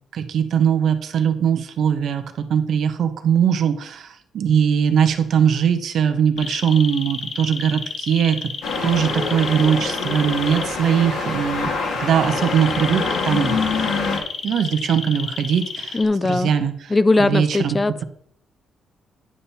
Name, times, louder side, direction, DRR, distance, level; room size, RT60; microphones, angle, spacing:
voice 1, 0.1-4.1 4.3-8.4 8.8-11.7 12.0-13.5 14.4-16.0 16.2-16.9 17.2-18.0, right 8 dB, 65° right, 8 dB, 1.1 m, -20 dB
sound 1, 6.4-10.6 12.2-16.0, left 5 dB, 50° left, 1.0 m, -31 dB
sound 2, 8.6-14.2, left 4 dB, 75° left, 2.3 m, -25 dB
voice 2, 15.9-16.5 16.9-17.9, left 2 dB, 20° left, 14 dB, 0.4 m, -19 dB
9.9 x 5.5 x 4.2 m, 0.62 s
cardioid pair, 90°, 0 cm